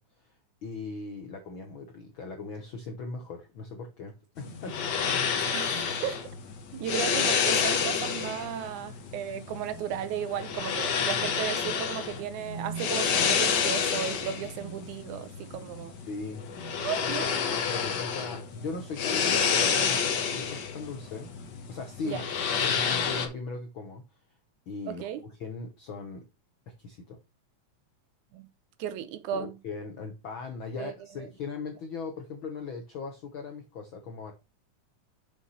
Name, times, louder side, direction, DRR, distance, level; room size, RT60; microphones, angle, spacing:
voice 1, 0.6-4.8 16.1-16.5 17.4-21.3 21.7-22.2 22.6-24.0 24.7-26.2 26.8-27.2 29.3-34.3, left 4 dB, 70° left, 1.2 m, -38 dB
sound 1, 4.4-23.3, left 6 dB, 90° left, 0.9 m, -29 dB
voice 2, 5.5-6.2 6.7-16.0 16.8-17.3 22.0-22.2 24.9-25.2 28.3-28.5 28.8-29.6 30.8-30.9 31.2-31.3, right 9 dB, 75° right, 2.1 m, -35 dB
6.5 x 5.7 x 4.1 m
omnidirectional pair, 3.6 m